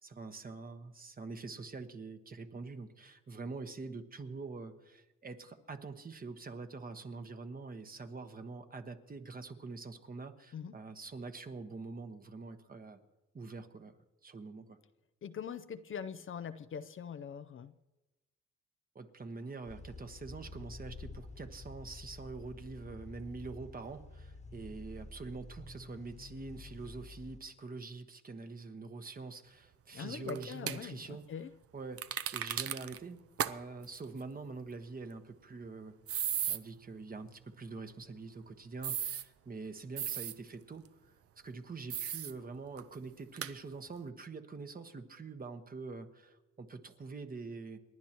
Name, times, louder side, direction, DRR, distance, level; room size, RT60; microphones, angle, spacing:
voice 1, 0.0-13.0 13.3-13.9 14.2-14.8 18.9-31.3 31.7-36.0 36.5-40.9 41.4-47.8, right 3 dB, 30° right, 7 dB, 1.1 m, -45 dB
voice 2, 15.2-17.7 29.9-31.5, left 7 dB, 45° left, 11 dB, 0.5 m, -42 dB
sound 1, 19.7-27.4, left 3 dB, 25° left, 1.3 m, -49 dB
sound 2, 30.3-30.8 32.0-33.0 33.4-33.5 33.8-34.0 36.1-36.6 38.8-39.2 40.0-40.3 41.9-42.3 42.8-42.9 43.4-43.5, right 10 dB, 50° right, 0.6 m, -35 dB
29.5 x 10.5 x 3.0 m, 1.1 s
cardioid pair, 90°, 30 cm